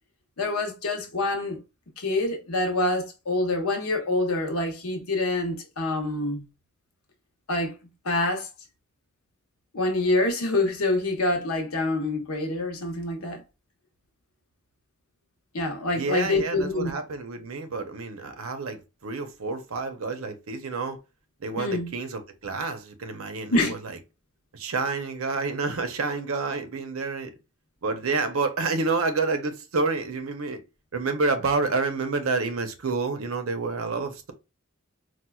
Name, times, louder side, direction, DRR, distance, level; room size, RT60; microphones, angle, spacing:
voice 1, 0.4-1.6 2.0-6.4 7.5-7.7 8.0-8.5 9.7-13.4 15.5-16.9 21.6-21.9 23.5-23.7, left 2 dB, 75° left, 0.9 m, -26 dB
voice 2, 15.9-21.0 21.4-23.9 24.5-27.3 27.8-30.6 30.9-34.3, right 3 dB, 70° right, 0.6 m, -29 dB
4.3 x 2.2 x 2.3 m
head